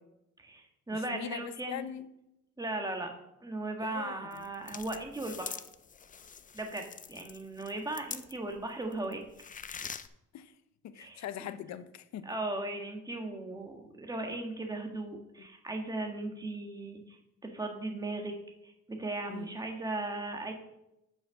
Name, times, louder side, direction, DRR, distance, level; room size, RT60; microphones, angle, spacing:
voice 1, 0.4-1.8 2.6-3.1 3.4-5.6 6.5-9.2 11.0-11.2 12.2-17.2 17.5-18.3 18.6-20.5, right 2 dB, 10° right, 3 dB, 1.5 m, -37 dB
voice 2, 0.9-2.1 3.8-4.4 10.3-10.5 10.8-12.3 15.4-15.5 19.3-19.5, left 10 dB, 65° left, 13 dB, 0.7 m, -42 dB
sound 1, 4.3-8.6 8.9-10.1, left 7 dB, 25° left, 0.4 m, -44 dB
6.3 x 5.7 x 6.3 m, 0.87 s
cardioid pair, 90°, 30 cm